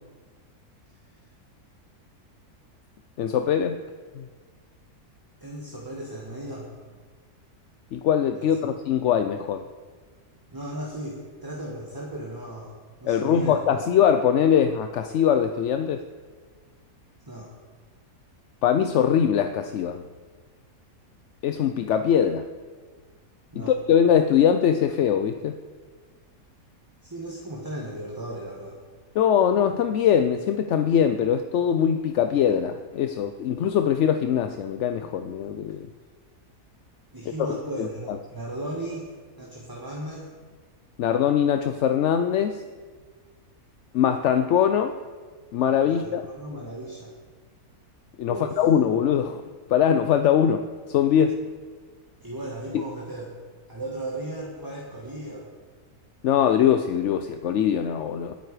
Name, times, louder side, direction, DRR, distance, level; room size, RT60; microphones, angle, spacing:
voice 1, 3.2-3.8 4.2-4.3 7.9-9.6 13.0-16.0 18.6-20.0 21.4-22.5 23.5-25.6 29.1-35.9 37.8-38.2 41.0-42.6 43.9-45.0 45.5-46.2 48.2-49.4 49.7-51.4 52.7-52.8 56.2-58.4, left 8 dB, 65° left, 8 dB, 0.8 m, -22 dB
voice 2, 5.4-6.7 8.4-8.5 10.5-13.6 17.3-17.5 23.5-23.8 27.0-28.8 37.1-39.1 39.4-40.3 45.8-47.1 48.3-48.6 52.2-53.3 53.7-55.5, right 1 dB, 15° right, -3 dB, 1.7 m, -36 dB
20.0 x 9.3 x 4.9 m, 1.5 s
omnidirectional pair, 1.6 m